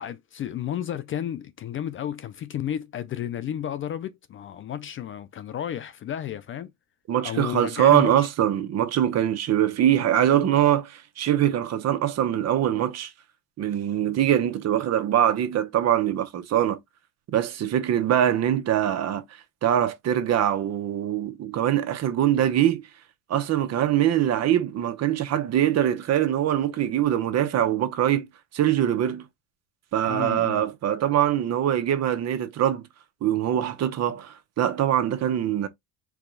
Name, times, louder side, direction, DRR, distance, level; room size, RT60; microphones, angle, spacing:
voice 1, 0.0-6.7 7.2-8.3 30.1-30.6, left 10 dB, 35° left, 0.4 m, -32 dB
voice 2, 7.1-13.1 13.6-16.8 17.3-19.2 19.6-22.8 23.3-28.3 28.5-29.2 29.9-32.8 33.2-35.7, right 11 dB, 45° right, 0.8 m, -23 dB
4.7 x 2.2 x 3.9 m
cardioid pair, 120°, 37 cm